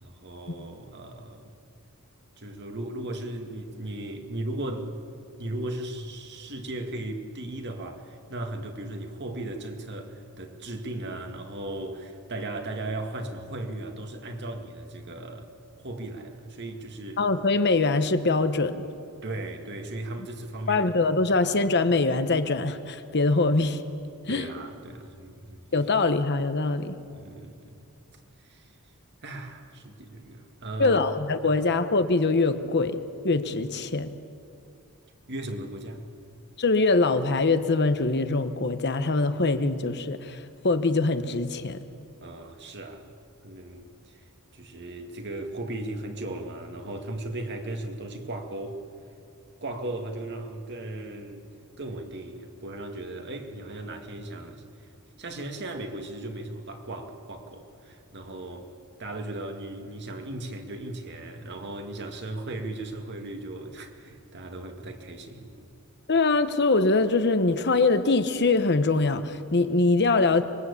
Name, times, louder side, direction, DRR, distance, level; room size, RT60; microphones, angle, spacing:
voice 1, 0.0-1.7 2.4-4.9 5.4-15.5 15.8-17.2 19.2-21.0 24.3-25.6 27.1-27.8 28.4-28.7 29.2-31.0 31.4-31.6 35.3-36.0 42.2-43.1 43.4-44.2 44.5-48.8 49.6-51.4 51.8-54.6 55.2-58.7 59.0-65.7, right 1 dB, 50° right, 2.1 m, -37 dB
voice 2, 17.2-18.8 20.7-23.8 24.3-24.5 25.7-27.0 30.8-33.0 33.2-34.1 36.6-40.4 40.6-41.8 66.1-70.4, left 3 dB, 50° left, 1.1 m, -23 dB
25.0 x 21.5 x 8.4 m
head